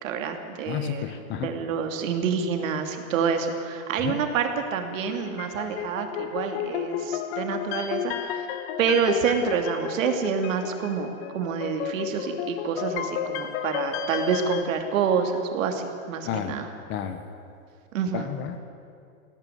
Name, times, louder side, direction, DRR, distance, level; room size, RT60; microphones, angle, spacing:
voice 1, 0.0-8.5 8.8-16.7 17.9-18.3, right 6 dB, 65° right, 5 dB, 2.9 m, -27 dB
voice 2, 0.7-1.5 4.0-4.2 16.2-16.5 16.9-17.2 18.1-18.6, left 9 dB, 25° left, 9 dB, 1.3 m, -31 dB
sound 1, 5.1-14.6, left 9 dB, 45° left, 1.6 m, -32 dB
19.5 x 17.0 x 9.4 m, 2.4 s
supercardioid pair, 150°, 42 cm